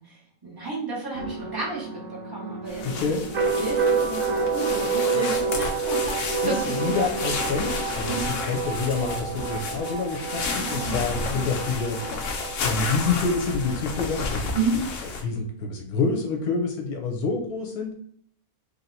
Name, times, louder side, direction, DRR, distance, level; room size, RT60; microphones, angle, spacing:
voice 1, 0.0-3.1 3.4-7.1 8.1-8.3 10.5-11.5 14.5-14.9, right 3 dB, 15° right, -6 dB, 1.5 m, -32 dB
sound 1, 1.1-14.7, right 5 dB, 65° right, 1.1 m, -29 dB
sound 2, 2.7-15.2, left 4 dB, 60° left, 0.9 m, -32 dB
voice 2, 2.8-3.2 6.4-6.5 6.8-8.2 8.4-12.0 12.3-14.4 15.2-17.9, left 4 dB, 75° left, 2 dB, 1.2 m, -27 dB
sound 3, 5.3-9.5 9.8-10.0 10.3-10.7 11.4-11.5, left 1 dB, 40° left, 1.1 m, -44 dB
3.2 x 2.8 x 4.1 m, 0.64 s
omnidirectional pair, 1.6 m